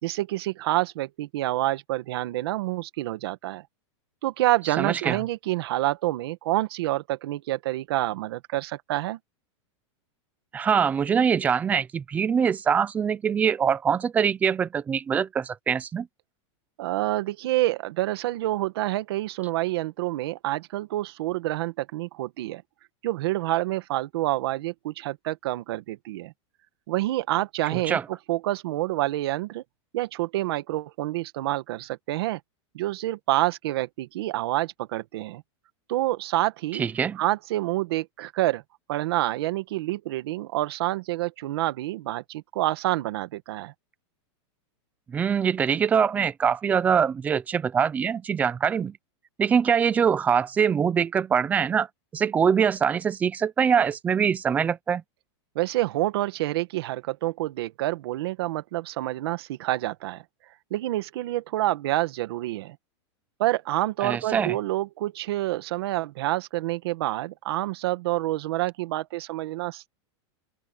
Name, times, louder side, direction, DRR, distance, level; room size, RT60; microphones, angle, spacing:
voice 1, 0.0-3.6 4.2-9.2 16.8-22.6 23.0-26.3 26.9-29.6 29.9-32.4 32.7-35.4 35.9-36.8 37.2-38.6 38.9-43.7 55.5-60.2 60.7-62.8 63.4-69.9, right 16 dB, 55° right, 1.7 m, -27 dB
voice 2, 4.8-5.2 10.5-16.1 27.7-28.0 36.7-37.2 45.1-49.0 49.4-51.9 52.1-55.0 64.0-64.6, right 7 dB, 10° right, 0.5 m, -23 dB
open air
supercardioid pair, 175°, 15 cm